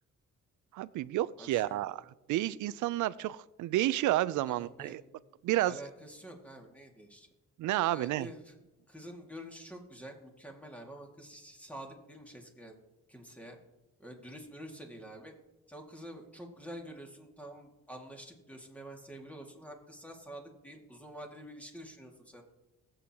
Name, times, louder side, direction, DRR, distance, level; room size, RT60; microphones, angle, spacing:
voice 1, 0.7-2.0 2.3-5.0 5.4-5.8 7.6-8.3, right 15 dB, 80° right, 18 dB, 0.5 m, -30 dB
voice 2, 1.4-1.8 4.5-5.0 5.7-7.3 7.9-8.5 8.9-12.8 13.1-13.6 14.0-15.3 15.7-22.4, right 1 dB, 5° left, 1 dB, 2.2 m, -48 dB
20.5 x 8.0 x 3.0 m, 1.0 s
cardioid pair, 90°, 30 cm